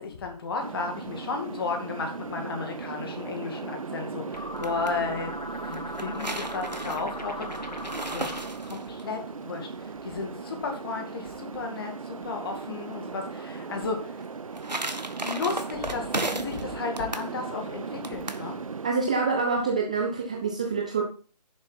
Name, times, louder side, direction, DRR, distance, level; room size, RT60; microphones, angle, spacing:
voice 1, 0.0-7.7 8.1-8.3 8.6-14.2 15.2-18.6, left 4 dB, 35° left, 4 dB, 2.2 m, -34 dB
sound 1, 0.6-18.9, right 5 dB, 55° right, 0.8 m, -38 dB
sound 2, 4.3-8.7, left 1 dB, 90° left, 1.9 m, -39 dB
sound 3, 4.4-4.9 5.7-9.0 14.2-16.6 17.0-17.3 18.0-18.5, right 2 dB, 85° right, 1.2 m, -34 dB
voice 2, 18.8-21.0, right 4 dB, 10° right, 1 dB, 0.4 m, -26 dB
10.5 x 7.1 x 4.2 m, 0.39 s
figure-of-eight pair, 145°, 21 cm